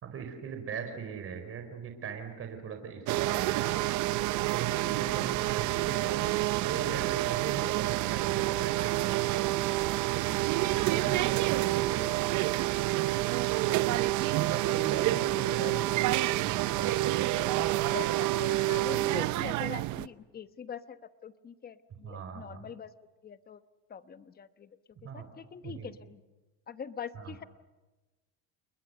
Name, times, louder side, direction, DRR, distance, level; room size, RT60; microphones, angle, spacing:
voice 1, 0.0-3.9 4.5-6.3 6.6-9.4 10.5-12.2 13.6-13.8 14.4-16.1 16.4-17.6 22.0-22.6 25.0-25.3 25.6-25.9 27.1-27.3, right 6 dB, 40° right, 6 dB, 4.6 m, -39 dB
sound 1, 3.1-20.1, right 17 dB, 55° right, 0.7 m, -28 dB
voice 2, 10.6-11.1 14.3-14.5 15.0-15.8 17.5-22.9 23.2-23.6 23.9-24.7 25.1-26.2 26.7-27.4, left 7 dB, 25° left, 12 dB, 1.1 m, -43 dB
sound 2, 14.5-17.5, right 8 dB, 80° right, 5.1 m, -49 dB
29.5 x 21.5 x 6.9 m, 1.2 s
cardioid pair, 120°, 35 cm